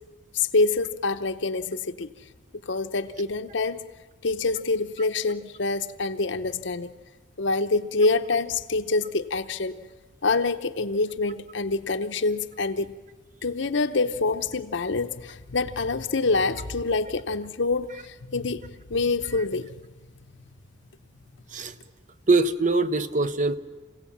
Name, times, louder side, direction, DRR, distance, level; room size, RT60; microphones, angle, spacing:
voice 1, 0.3-2.1 2.5-3.8 4.2-6.9 7.4-9.7 10.2-12.9 13.4-19.8, left 3 dB, 65° left, 10 dB, 0.8 m, -26 dB
voice 2, 22.3-23.6, right 3 dB, 40° right, 12 dB, 0.8 m, -22 dB
28.0 x 16.5 x 7.4 m, 1.3 s
head